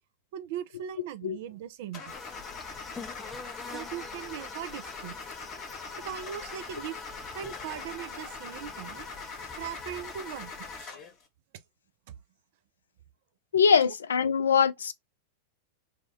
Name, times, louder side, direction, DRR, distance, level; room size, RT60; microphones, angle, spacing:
voice 1, 0.3-2.1 3.7-5.1 6.0-7.1 7.3-9.1 9.6-10.5 10.8-10.9 12.1-12.2 13.9-14.0, right 10 dB, 50° right, 0.4 m, -39 dB
Car / Engine starting, 1.9-11.2, left 4 dB, 40° left, 1.0 m, -42 dB
sound 1, 2.1-10.9, left 4 dB, 10° left, 0.5 m, -46 dB
voice 2, 13.5-14.9, left 6 dB, 70° left, 0.4 m, -23 dB
3.5 x 2.1 x 3.4 m
figure-of-eight pair, 90°, 0 cm